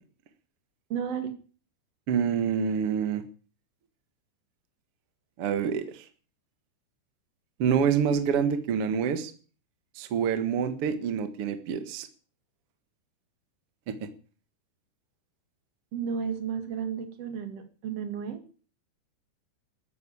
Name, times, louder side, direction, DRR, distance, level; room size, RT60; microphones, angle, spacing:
voice 1, 0.9-1.4 15.9-18.4, right 7 dB, 45° right, 8 dB, 2.2 m, -33 dB
voice 2, 2.1-3.2 5.4-6.0 7.6-9.3 9.9-12.1, right 7 dB, 65° right, 9 dB, 1.4 m, -27 dB
13.5 x 9.4 x 8.6 m, 0.41 s
omnidirectional pair, 5.2 m